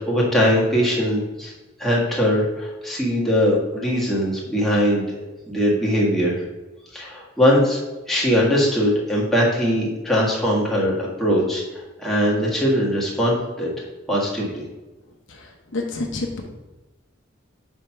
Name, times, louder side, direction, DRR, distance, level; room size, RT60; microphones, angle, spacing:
voice 1, 0.1-1.5 1.8-5.0 5.5-6.4 6.9-7.8 8.1-13.7 14.1-14.6, equal, ahead, -5 dB, 1.5 m, -21 dB
voice 2, 15.3-16.4, left 2 dB, 70° left, 2 dB, 0.9 m, -29 dB
5.0 x 4.4 x 5.7 m, 1.1 s
head